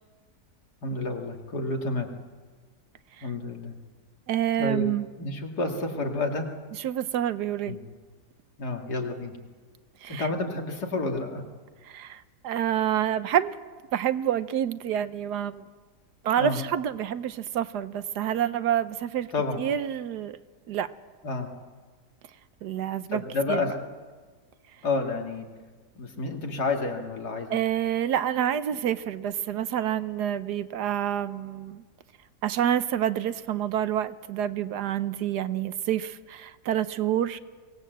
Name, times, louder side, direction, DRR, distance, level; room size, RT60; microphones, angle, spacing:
voice 1, 0.8-2.1 3.2-3.8 4.6-4.9 5.2-6.5 7.6-7.8 8.6-9.4 10.1-11.4 16.4-16.6 19.3-19.6 21.2-21.5 23.1-23.7 24.8-25.5 26.0-27.6, left 3 dB, 75° left, 3 dB, 2.7 m, -30 dB
voice 2, 4.3-5.1 6.8-7.8 10.0-10.3 11.9-13.6 13.9-15.6 16.2-19.3 19.6-20.4 20.7-20.9 22.6-23.2 23.5-23.6 27.5-31.8 32.4-37.4, right 10 dB, 75° right, 13 dB, 1.4 m, -28 dB
23.5 x 18.0 x 7.9 m, 1.4 s
omnidirectional pair, 1.8 m